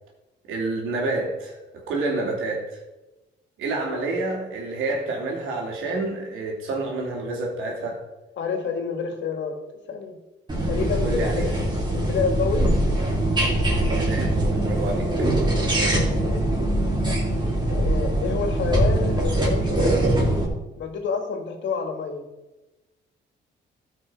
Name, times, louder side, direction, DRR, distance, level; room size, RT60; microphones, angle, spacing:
voice 1, 0.5-1.6 1.9-2.8 3.6-8.0 11.0-11.5 13.8-15.1, right 2 dB, 85° right, -1 dB, 3.1 m, -28 dB
voice 2, 8.4-9.6 9.9-10.2 10.7-11.5 11.9-12.7 16.1-16.5 17.7-20.1 20.8-22.3, left 5 dB, 65° left, 4 dB, 2.1 m, -28 dB
sound 1, 10.5-20.5, right 1 dB, 20° right, 3.4 m, -22 dB
13.5 x 6.0 x 4.9 m, 1.1 s
cardioid pair, 90°, 20 cm